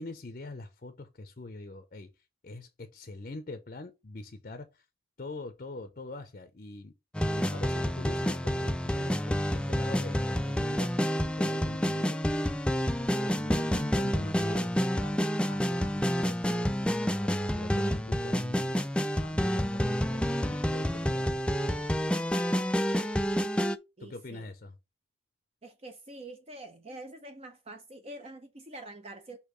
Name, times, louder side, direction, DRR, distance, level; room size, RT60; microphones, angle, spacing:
voice 1, 0.0-2.1 2.4-4.7 5.2-6.9 7.4-10.9 11.2-12.2 13.0-15.2 15.5-16.6 17.0-18.8 19.2-21.8 24.0-24.7, left 2 dB, 45° left, 0.6 m, -44 dB
sound 1, 7.1-23.8, equal, 5° left, 0.3 m, -29 dB
voice 2, 24.0-24.5 25.6-29.4, right 2 dB, 35° right, 0.7 m, -46 dB
6.5 x 2.8 x 5.0 m
head